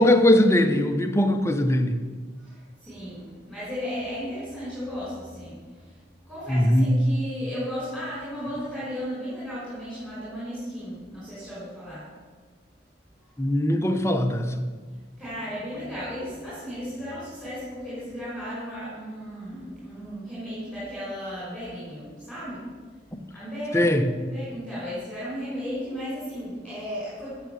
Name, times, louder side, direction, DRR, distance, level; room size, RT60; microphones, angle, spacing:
voice 1, 0.0-2.0 6.5-6.9 13.4-14.6 23.1-23.2 23.7-24.1, left 1 dB, 15° left, 6 dB, 1.0 m, -20 dB
voice 2, 2.4-5.6 6.3-12.0 15.2-22.6 23.3-27.4, equal, 5° right, -9 dB, 5.2 m, -35 dB
14.5 x 7.6 x 6.9 m, 1.4 s
head